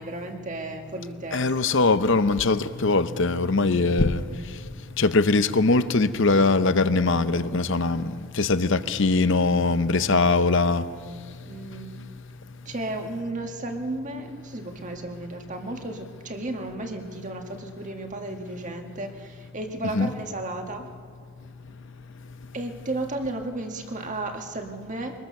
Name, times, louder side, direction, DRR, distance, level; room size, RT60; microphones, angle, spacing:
voice 1, 0.0-1.5 11.4-11.9 12.7-20.9 22.5-25.1, right 2 dB, 35° right, 1.7 m, -34 dB
voice 2, 1.3-4.2 5.0-8.1 8.4-10.8 19.9-20.1, left 3 dB, 55° left, 0.7 m, -21 dB
24.0 x 20.0 x 6.6 m
head